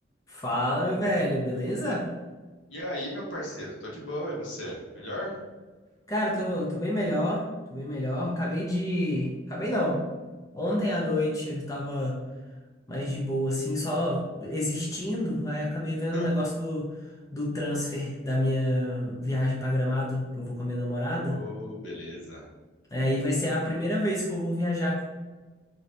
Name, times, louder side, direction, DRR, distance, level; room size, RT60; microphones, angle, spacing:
voice 1, 0.3-2.1 6.1-10.0 10.5-12.2 12.9-16.9 17.3-21.4 22.9-25.0, left 1 dB, 20° left, -3 dB, 0.4 m, -28 dB
voice 2, 2.7-5.4 16.1-16.3 21.1-22.5, equal, 85° left, -3 dB, 1.0 m, -36 dB
2.6 x 2.5 x 3.2 m, 1.3 s
head